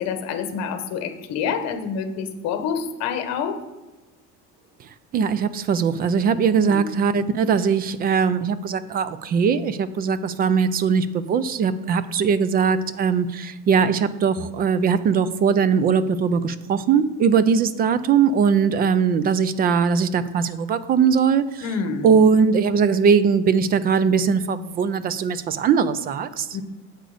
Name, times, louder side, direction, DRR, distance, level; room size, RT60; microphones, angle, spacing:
voice 1, 0.0-3.6 6.5-6.9 21.6-22.1 26.5-26.6, left 6 dB, 55° left, 8 dB, 1.2 m, -27 dB
voice 2, 5.1-21.6 22.0-26.5, right 6 dB, 30° right, 15 dB, 0.4 m, -20 dB
8.0 x 7.9 x 4.9 m, 1.1 s
cardioid pair, 175°, 31 cm